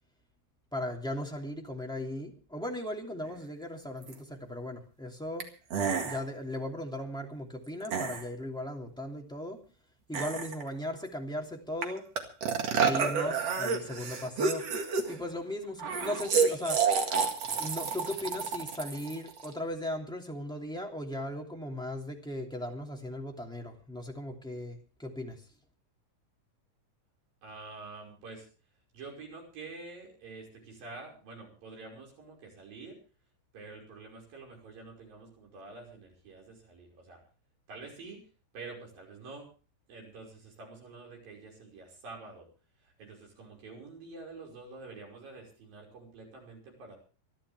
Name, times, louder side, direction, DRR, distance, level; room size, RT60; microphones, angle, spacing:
voice 1, 0.7-5.5 6.0-9.6 10.1-12.1 12.7-14.7 15.1-16.8 17.6-25.5, left 1 dB, ahead, 0 dB, 2.2 m, -37 dB
sound 1, 4.1-4.2 5.4-5.5 5.7-6.2 7.9-8.2 10.1-10.7 11.8-11.9 12.2-15.3 15.8-19.5, right 5 dB, 50° right, 2.8 m, -29 dB
voice 2, 27.4-28.5 28.9-33.0 33.5-37.2 37.7-38.2 38.5-39.5 39.9-42.5 43.0-47.0, right 3 dB, 90° right, 0 dB, 7.2 m, -47 dB
26.5 x 11.5 x 3.4 m, 0.36 s
omnidirectional pair, 3.9 m